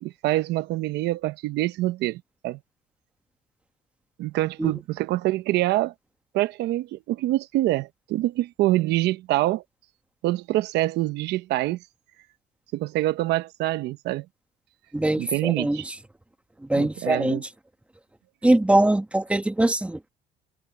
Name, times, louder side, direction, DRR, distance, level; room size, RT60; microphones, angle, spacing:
voice 1, 0.0-2.6 4.2-5.9 6.3-9.6 10.2-11.8 12.7-14.3 15.2-15.9 16.7-17.4, right 16 dB, 80° right, 0.8 m, -25 dB
voice 2, 14.9-15.9 16.6-17.5 18.4-20.1, right 1 dB, 5° right, 1.4 m, -22 dB
cardioid pair, 110°, 17 cm